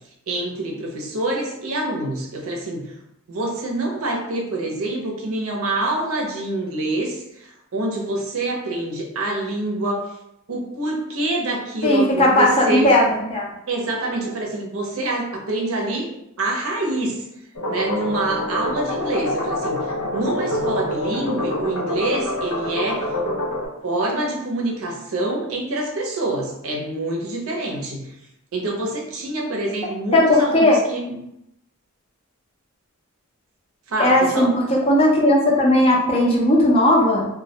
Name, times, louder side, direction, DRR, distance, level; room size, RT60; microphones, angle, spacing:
voice 1, 0.3-2.9 3.3-10.1 10.5-12.9 13.7-16.1 16.4-17.2 17.7-23.0 23.8-28.1 28.5-31.2 33.9-34.5, right 2 dB, 70° right, 0 dB, 0.5 m, -26 dB
voice 2, 11.8-13.5 30.1-30.8 34.0-37.3, left 1 dB, 25° left, -2 dB, 0.4 m, -17 dB
sound 1, 17.6-23.7, left 1 dB, 85° left, 0.6 m, -26 dB
2.2 x 2.1 x 2.7 m, 0.82 s
head